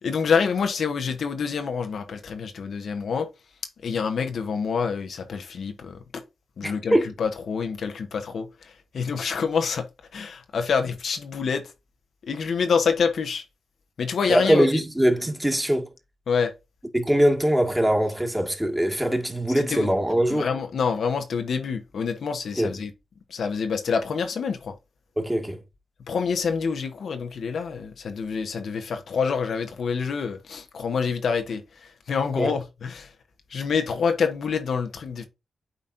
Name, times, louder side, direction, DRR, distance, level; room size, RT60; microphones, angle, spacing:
voice 1, 0.0-3.3 3.8-6.2 6.6-9.9 10.1-11.6 12.3-13.4 14.0-14.7 16.3-16.5 19.6-19.9 20.3-22.9 23.3-24.7 26.1-33.1 33.5-35.2, left 5 dB, 70° left, 1.1 m, -27 dB
voice 2, 6.6-7.1 14.3-15.9 16.9-20.5 22.6-22.8 25.2-25.6 32.3-32.5, right 1 dB, 10° right, 2.0 m, -22 dB
9.1 x 4.1 x 2.6 m
cardioid pair, 60°, 0 cm